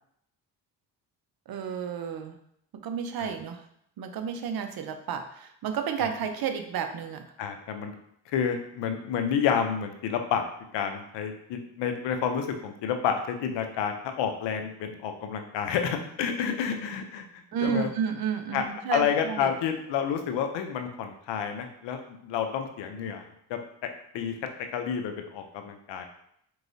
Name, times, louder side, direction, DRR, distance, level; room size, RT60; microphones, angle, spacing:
voice 1, 1.5-2.4 2.7-3.7 4.0-7.3 17.5-19.5, right 7 dB, 60° right, 7 dB, 0.7 m, -31 dB
voice 2, 7.4-7.9 8.3-10.4 10.7-17.9 18.5-18.6 18.9-22.0 22.2-23.6 24.1-24.4 24.7-26.0, left 7 dB, 85° left, 6 dB, 0.6 m, -29 dB
4.5 x 3.1 x 2.6 m, 0.71 s
cardioid pair, 65°, 42 cm